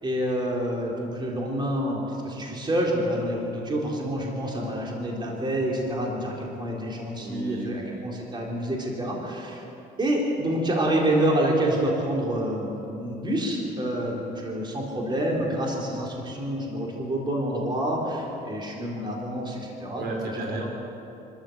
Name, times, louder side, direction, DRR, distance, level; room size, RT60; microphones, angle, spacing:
voice 1, 0.0-9.6 10.0-20.1, right 1 dB, 25° right, -2 dB, 4.0 m, -27 dB
voice 2, 7.2-8.0 19.9-20.7, right 2 dB, 75° right, 1 dB, 5.0 m, -33 dB
26.0 x 13.5 x 8.0 m, 2.9 s
cardioid pair, 110°, 17 cm